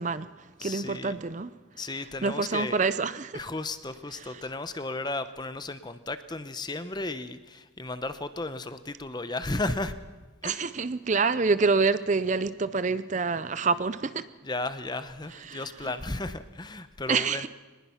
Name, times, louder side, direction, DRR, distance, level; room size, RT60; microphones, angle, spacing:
voice 1, 0.0-1.5 1.9-3.3 4.1-4.3 10.4-14.3 15.4-16.0 17.1-17.5, right 4 dB, 35° right, 0.5 m, -27 dB
voice 2, 0.6-1.1 1.8-2.8 3.3-10.0 10.4-10.6 14.4-17.5, left 2 dB, 20° left, 0.8 m, -34 dB
23.5 x 20.0 x 5.8 m
head